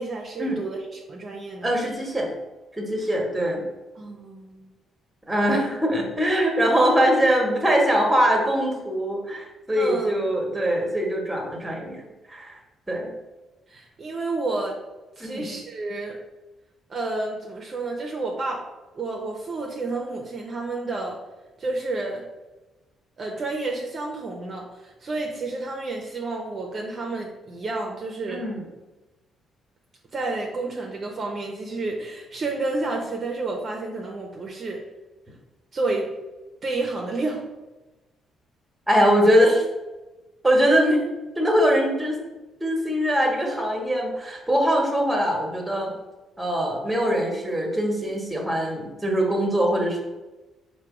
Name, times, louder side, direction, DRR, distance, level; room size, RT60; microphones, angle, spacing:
voice 1, 0.0-1.7 3.0-3.1 4.0-4.7 9.8-10.1 13.7-14.8 15.2-16.2 16.9-18.6 18.9-21.2 21.6-22.3 23.2-28.5 30.1-34.8 35.7-36.1 36.6-37.4, right 2 dB, 45° right, 0 dB, 0.6 m, -30 dB
voice 2, 1.6-2.3 2.8-3.6 5.3-12.5 12.9-13.1 15.2-15.5 28.3-28.7 38.9-39.6 40.4-41.0 41.4-42.2 42.6-45.9 46.4-50.0, equal, 15° right, 1 dB, 1.2 m, -22 dB
4.5 x 2.2 x 4.8 m, 1.1 s
cardioid pair, 90°, 0 cm